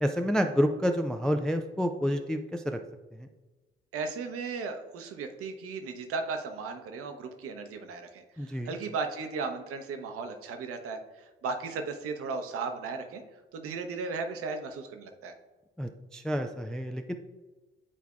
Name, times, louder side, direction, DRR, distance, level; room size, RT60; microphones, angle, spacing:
voice 1, 0.0-2.8 3.2-3.3 8.4-8.7 15.8-17.1, equal, ahead, 6 dB, 0.3 m, -29 dB
voice 2, 3.9-13.2 13.5-15.3, right 4 dB, 50° right, 6 dB, 0.9 m, -36 dB
9.9 x 4.5 x 2.4 m, 1.2 s
figure-of-eight pair, 45°, 29 cm